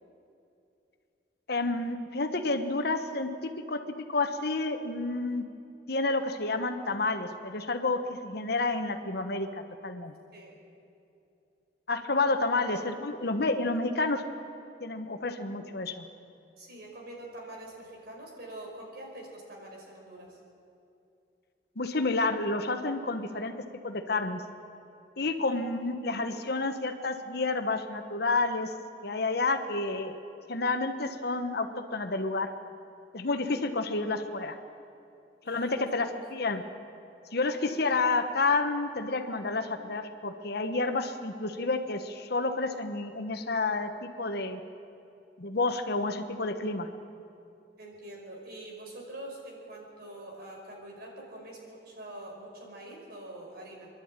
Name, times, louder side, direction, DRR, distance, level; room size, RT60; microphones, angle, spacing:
voice 1, 1.5-5.4 5.9-10.1 11.9-14.2 14.8-16.1 21.8-23.5 23.8-24.4 25.2-28.7 29.0-30.2 30.5-32.5 33.1-34.6 35.5-36.6 37.3-44.6 45.4-46.9, left 3 dB, 65° left, 7 dB, 1.3 m, -30 dB
voice 2, 16.6-20.4 25.2-25.4 35.4-35.8 36.1-36.2 47.8-53.9, right 1 dB, 60° right, -1 dB, 5.1 m, -45 dB
26.0 x 11.5 x 9.0 m, 2.7 s
head